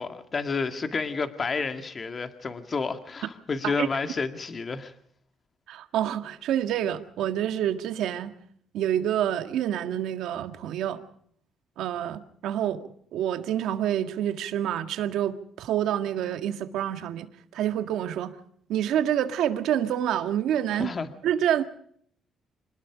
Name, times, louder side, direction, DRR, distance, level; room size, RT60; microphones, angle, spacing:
voice 1, 0.0-4.9 20.7-21.1, left 4 dB, 35° left, 2.0 m, -30 dB
voice 2, 5.7-8.3 8.7-11.0 11.8-12.8 13.1-18.4 18.7-20.9 21.2-21.7, right 10 dB, 80° right, 1.8 m, -27 dB
26.0 x 19.5 x 5.1 m
cardioid pair, 105°, 0 cm